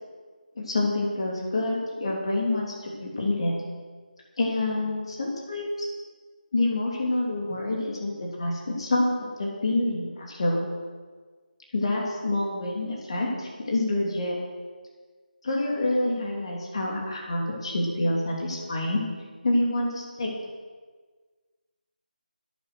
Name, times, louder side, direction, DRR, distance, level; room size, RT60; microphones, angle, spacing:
voice 1, 0.6-3.5 4.4-5.9 6.5-10.6 11.7-14.4 15.4-19.0 19.4-20.3, left 2 dB, 35° left, -2 dB, 3.0 m, -27 dB
11.0 x 10.5 x 6.7 m, 1.5 s
figure-of-eight pair, 170°, 5 cm